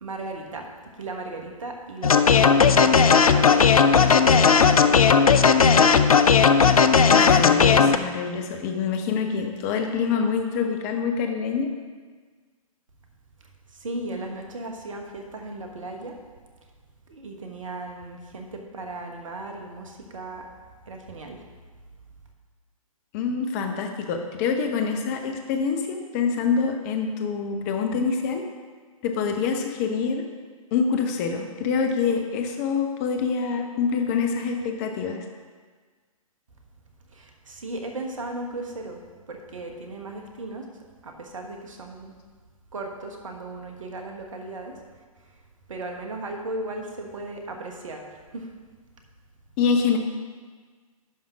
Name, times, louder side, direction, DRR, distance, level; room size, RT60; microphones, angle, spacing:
voice 1, 0.0-5.9 13.7-16.2 17.1-20.5 20.9-21.4 37.1-39.0 39.3-40.7 41.0-42.1 42.7-44.8 45.2-45.3 45.7-48.5, right 2 dB, 60° right, 3 dB, 1.3 m, -36 dB
sound 1, 2.0-8.0, left 6 dB, 75° left, 0.5 m, -16 dB
voice 2, 7.1-11.7 23.1-28.4 29.0-30.2 30.7-35.2 49.6-50.0, left 5 dB, 25° left, 4 dB, 0.8 m, -26 dB
11.0 x 3.7 x 6.1 m, 1.5 s
figure-of-eight pair, 125°, 19 cm